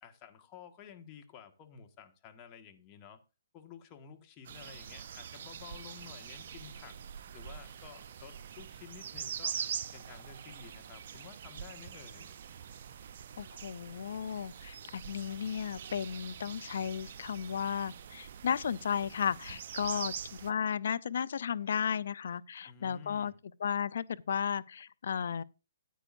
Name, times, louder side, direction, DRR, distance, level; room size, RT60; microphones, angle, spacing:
voice 1, 0.0-3.2 3.5-7.0 7.3-9.6 9.9-12.3 19.8-20.1 22.6-23.4, left 7 dB, 25° left, 1.6 m, -52 dB
sound 1, 4.4-20.5, right 8 dB, 50° right, 0.7 m, -44 dB
voice 2, 13.4-20.1 20.4-23.3 23.6-25.4, left 7 dB, 60° left, 0.5 m, -34 dB
14.0 x 9.0 x 2.6 m
hypercardioid pair, 140°, 0 cm